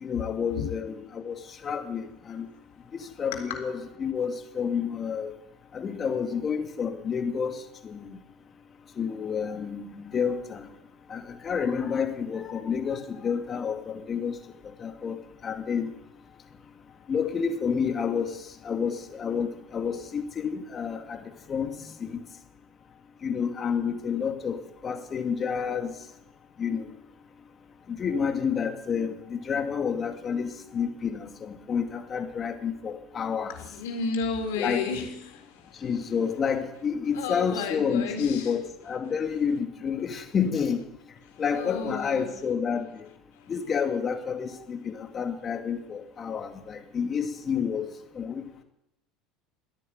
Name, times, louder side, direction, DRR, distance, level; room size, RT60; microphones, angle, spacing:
voice 1, 0.0-1.3 1.6-2.5 2.9-5.3 5.7-7.5 7.8-8.1 9.0-10.6 11.1-14.3 14.8-15.2 15.4-15.9 17.1-18.4 18.6-21.2 21.5-22.2 23.2-24.6 24.8-25.9 26.6-26.9 28.0-33.5 34.6-34.8 35.8-40.8 41.4-42.9 43.5-47.9 48.2-48.4, left 6 dB, 35° left, 6 dB, 2.4 m, -29 dB
voice 2, 33.5-35.8 37.1-38.5 41.3-42.3, left 5 dB, 85° left, 3 dB, 3.9 m, -32 dB
13.5 x 11.0 x 9.3 m, 0.88 s
supercardioid pair, 95°, 0 cm